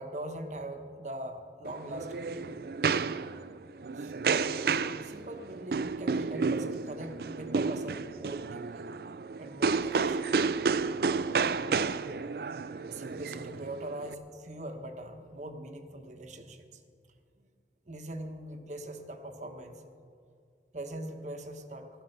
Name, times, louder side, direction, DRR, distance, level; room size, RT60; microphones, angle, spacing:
voice 1, 0.0-2.6 3.9-4.3 5.0-8.8 9.4-10.4 12.9-16.8 17.9-19.8 20.7-21.9, right 1 dB, 40° right, 6 dB, 1.1 m, -42 dB
sound 1, 1.7-14.1, right 5 dB, 55° right, 0.4 m, -31 dB
16.0 x 12.5 x 6.6 m, 2.2 s
head